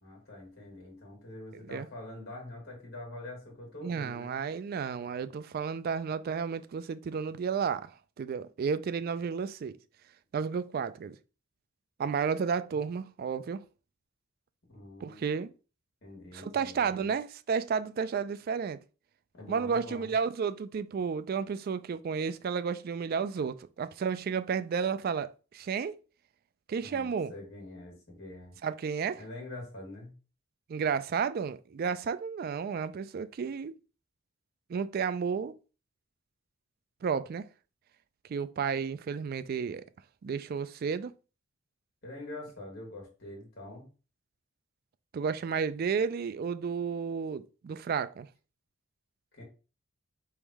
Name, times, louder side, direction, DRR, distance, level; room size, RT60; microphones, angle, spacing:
voice 1, 0.0-4.3 14.7-15.4 16.0-17.1 19.3-20.1 26.8-28.6 29.2-30.1 42.0-43.9 49.3-49.4, left 2 dB, 50° left, 1.8 m, -45 dB
voice 2, 3.8-9.7 10.3-11.2 12.0-13.6 15.0-15.5 16.3-18.8 19.5-26.0 26.7-27.3 28.6-29.2 30.7-33.7 34.7-35.5 37.0-37.5 38.3-39.8 40.2-41.1 45.1-48.3, right 6 dB, 45° right, 0.3 m, -32 dB
3.5 x 3.1 x 4.7 m
head